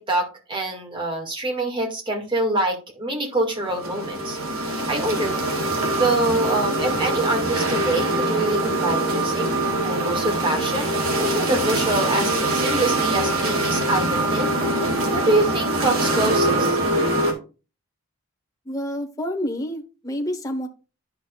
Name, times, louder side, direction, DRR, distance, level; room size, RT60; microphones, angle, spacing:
voice 1, 0.1-5.4 6.0-9.5 9.8-16.8, right 2 dB, 25° right, 1 dB, 2.2 m, -25 dB
sound 1, 3.6-17.3, right 1 dB, 70° right, 2.2 m, -23 dB
voice 2, 18.6-20.7, equal, 15° left, 1 dB, 1.1 m, -28 dB
10.5 x 5.9 x 2.4 m, 0.32 s
head